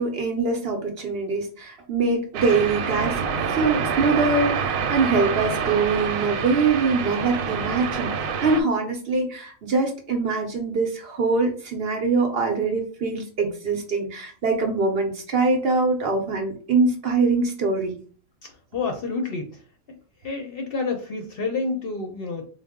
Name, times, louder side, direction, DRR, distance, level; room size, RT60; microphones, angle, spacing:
voice 1, 0.0-3.2 3.5-18.0, right 4 dB, 55° right, 3 dB, 0.8 m, -23 dB
sound 1, 2.3-8.6, right 6 dB, 85° right, 1.0 m, -26 dB
voice 2, 18.7-19.6 20.2-22.5, left 4 dB, 55° left, 3 dB, 0.7 m, -28 dB
4.0 x 2.0 x 3.5 m, 0.42 s
omnidirectional pair, 1.4 m